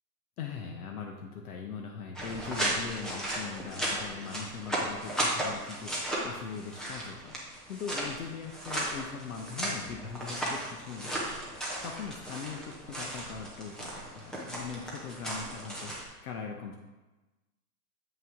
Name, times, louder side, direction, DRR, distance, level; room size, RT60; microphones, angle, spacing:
voice 1, 0.4-11.4 11.8-16.7, left 6 dB, 70° left, 2 dB, 1.0 m, -41 dB
sound 1, 2.2-16.0, right 1 dB, ahead, 0.3 m, -35 dB
7.5 x 5.5 x 3.6 m, 1.1 s
hypercardioid pair, 115°, 46 cm